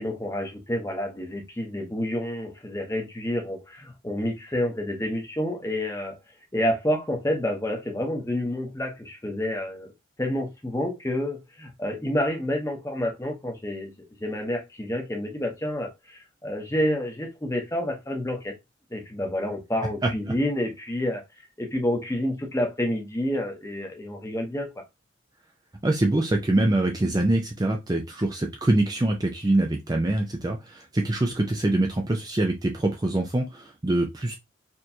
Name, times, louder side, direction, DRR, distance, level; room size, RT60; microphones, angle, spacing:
voice 1, 0.0-6.2 6.5-9.9 10.2-13.9 14.2-18.6 18.9-21.2 21.6-24.7, left 1 dB, 15° left, 0.8 m, -29 dB
voice 2, 25.8-34.4, right 1 dB, 20° right, 0.4 m, -24 dB
4.3 x 3.0 x 2.7 m
head